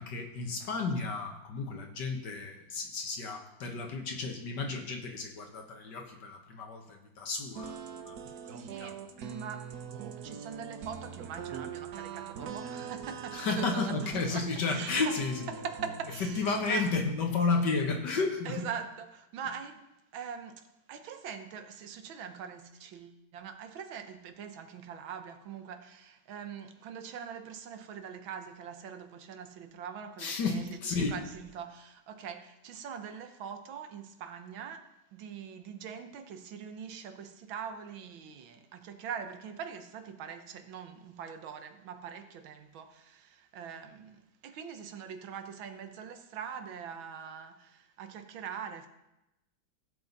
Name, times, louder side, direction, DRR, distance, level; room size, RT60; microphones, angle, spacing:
voice 1, 0.0-7.8 8.1-8.2 8.8-8.9 13.3-15.5 16.4-18.7 30.2-31.1, left 4 dB, 65° left, 1.9 m, -32 dB
sound 1, 7.6-17.0, right 6 dB, 60° right, 1.2 m, -42 dB
voice 2, 8.5-9.7 10.2-15.2 15.5-16.9 18.5-19.8 20.1-34.8 35.1-48.9, right 7 dB, 85° right, 1.7 m, -43 dB
16.0 x 7.8 x 4.1 m
omnidirectional pair, 2.1 m